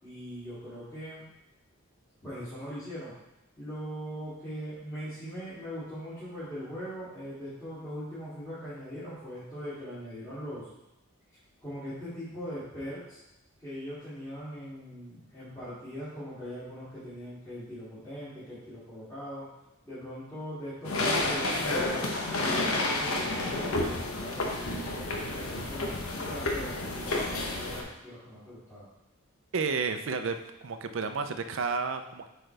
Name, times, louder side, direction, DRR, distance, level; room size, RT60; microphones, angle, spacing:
voice 1, 0.0-1.2 2.2-3.1 3.6-10.7 11.6-13.2 13.6-19.5 19.8-22.1 22.4-28.9, equal, 15° left, -16 dB, 2.5 m, -40 dB
sound 1, 20.8-27.8, left 2 dB, 80° left, 1.0 m, -30 dB
voice 2, 29.5-30.4 30.6-32.3, right 4 dB, 60° right, 8 dB, 0.5 m, -31 dB
7.8 x 4.6 x 3.3 m, 0.91 s
head